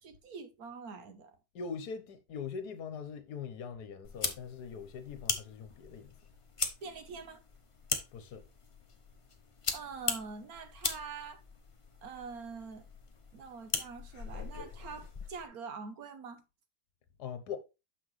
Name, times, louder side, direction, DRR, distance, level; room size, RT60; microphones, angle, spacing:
voice 1, 0.0-1.4 6.8-7.4 9.7-11.4 12.0-12.9 13.3-16.4, right 5 dB, 65° right, 1.3 m, -45 dB
voice 2, 1.5-6.2 8.1-8.5 17.2-17.6, left 6 dB, 70° left, 1.5 m, -42 dB
sound 1, 4.0-15.5, left 4 dB, 30° left, 0.6 m, -40 dB
6.8 x 5.8 x 3.2 m
omnidirectional pair, 1.8 m